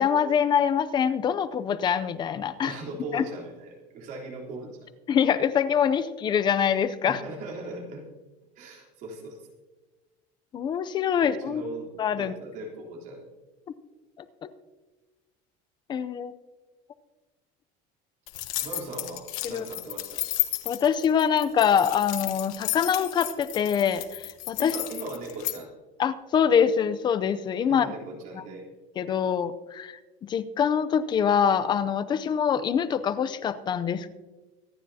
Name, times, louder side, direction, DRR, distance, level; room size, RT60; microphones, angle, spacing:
voice 1, 0.0-2.7 3.1-3.2 5.1-7.2 10.5-11.6 12.0-12.3 14.4-14.5 15.9-16.3 19.4-19.6 20.7-24.7 26.0-27.9 29.0-34.1, left 8 dB, 25° left, 13 dB, 0.6 m, -24 dB
voice 2, 2.6-4.9 7.1-8.0 8.6-9.5 11.2-11.9 12.2-13.3 18.6-20.2 24.6-25.7 27.7-28.7, right 2 dB, 50° right, -2 dB, 3.6 m, -39 dB
sound 1, 18.3-25.6, left 17 dB, 80° left, 1.2 m, -33 dB
25.0 x 9.9 x 2.8 m, 1.2 s
cardioid pair, 160°, 17 cm